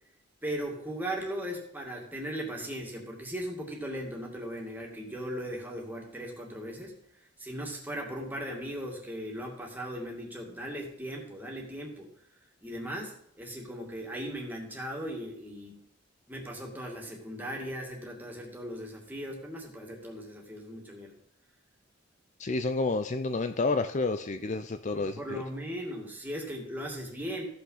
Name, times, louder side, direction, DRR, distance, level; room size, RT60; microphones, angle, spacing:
voice 1, 0.4-6.9 7.4-12.1 12.6-15.8 16.3-21.1 24.9-27.4, equal, 10° right, 0 dB, 2.3 m, -38 dB
voice 2, 22.4-25.4, left 3 dB, 40° left, 9 dB, 0.5 m, -30 dB
14.5 x 5.9 x 5.6 m, 0.72 s
head